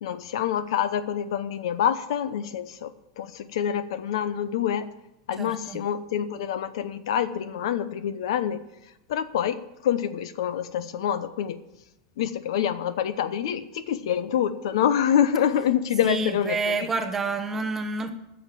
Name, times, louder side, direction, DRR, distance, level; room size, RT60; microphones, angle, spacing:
voice 1, 0.0-2.9 3.2-4.9 5.3-8.6 9.1-11.6 12.2-16.8, left 9 dB, 75° left, 0.8 m, -26 dB
voice 2, 5.4-5.8 16.0-18.1, right 4 dB, 10° right, 0.8 m, -29 dB
10.0 x 6.6 x 9.0 m
supercardioid pair, 165°, 3 cm